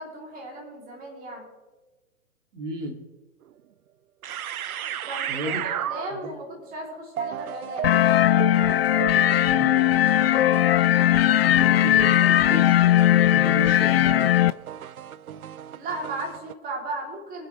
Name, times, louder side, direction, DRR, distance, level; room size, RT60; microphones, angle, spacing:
voice 1, 0.0-1.5 5.1-7.9 15.7-17.5, right 2 dB, 20° right, -1 dB, 3.7 m, -36 dB
voice 2, 2.5-3.0 5.3-5.6 6.1-6.3 9.4-9.8 11.4-12.8 13.1-14.3, equal, 60° right, 3 dB, 2.9 m, -33 dB
sound 1, 3.4-3.5 4.2-6.4 7.2-16.5, right 10 dB, 85° right, 0.6 m, -35 dB
sound 2, 7.8-14.5, left 12 dB, 45° left, 0.5 m, -19 dB
23.5 x 8.4 x 3.5 m, 1.2 s
hypercardioid pair, 130°, 42 cm